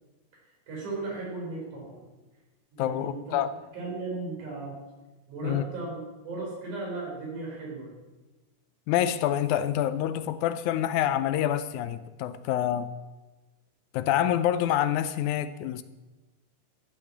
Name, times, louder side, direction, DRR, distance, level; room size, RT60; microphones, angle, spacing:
voice 1, 0.7-2.0 2.7-3.3 3.7-4.8 5.3-7.9, right 3 dB, 65° right, 6.0 m, -36 dB
voice 2, 2.8-3.5 5.4-5.7 8.9-12.9 13.9-15.8, left 11 dB, 80° left, 1.9 m, -27 dB
13.0 x 8.8 x 8.5 m
omnidirectional pair, 3.8 m